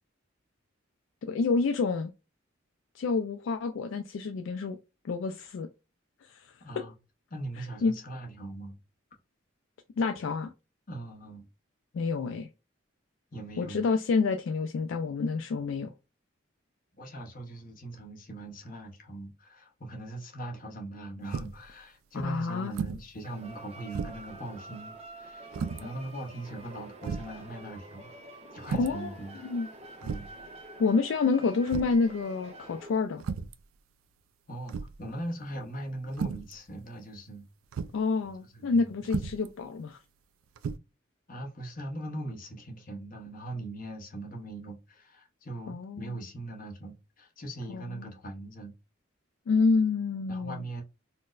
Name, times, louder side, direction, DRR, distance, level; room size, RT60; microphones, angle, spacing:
voice 1, 1.2-2.1 3.0-4.8 5.0-5.7 6.2-6.5 7.8-7.9 10.0-10.5 11.9-12.5 13.6-15.9 22.2-22.7 28.7-29.1 29.4-29.7 30.8-33.2 37.9-40.0 45.7-46.2 47.7-48.1 49.5-50.6, left 4 dB, 70° left, 0.3 m, -28 dB
voice 2, 7.3-8.8 10.9-11.5 13.3-13.8 17.0-28.1 28.5-29.4 30.0-30.3 34.5-37.5 38.5-38.9 41.3-48.7 50.3-50.8, right 1 dB, 40° left, 0.8 m, -40 dB
sound 1, 21.3-21.7 22.7-23.1 23.5-23.6 23.9-24.3 25.5-25.8 26.6-26.7 27.0-27.3 28.6-29.0 30.0-30.4 31.7-32.0 33.2-33.6 34.7-35.1 36.1-36.5 37.7-38.0 39.0-39.5 40.6-40.8, right 5 dB, 85° right, 0.3 m, -34 dB
sound 2, 23.2-32.9, right 2 dB, 30° right, 0.5 m, -47 dB
4.2 x 2.1 x 2.4 m
head